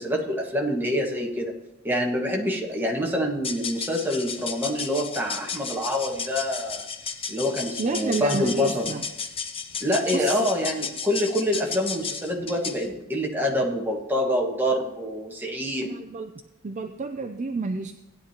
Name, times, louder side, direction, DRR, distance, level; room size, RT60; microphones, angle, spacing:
voice 1, 0.0-1.5 1.8-6.8 7.3-8.9 9.8-15.9, equal, 10° right, -1 dB, 1.6 m, -26 dB
sound 1, 3.4-12.9, left 5 dB, 25° left, 0.7 m, -34 dB
voice 2, 7.8-9.0 10.1-10.5 15.8-16.3 16.6-17.9, right 3 dB, 35° right, 7 dB, 0.4 m, -30 dB
17.0 x 10.0 x 2.9 m, 0.94 s
head